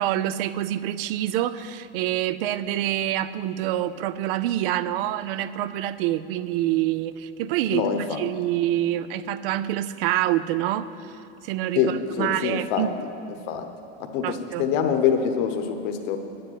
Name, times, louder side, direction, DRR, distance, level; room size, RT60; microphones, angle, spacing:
voice 1, 0.0-12.9 14.2-14.7, right 13 dB, 55° right, 15 dB, 0.5 m, -26 dB
voice 2, 7.7-8.2 11.8-12.8 13.5-13.7 14.0-16.2, left 7 dB, 45° left, 5 dB, 1.1 m, -25 dB
9.8 x 7.7 x 9.4 m, 2.5 s
supercardioid pair, 155°, 35 cm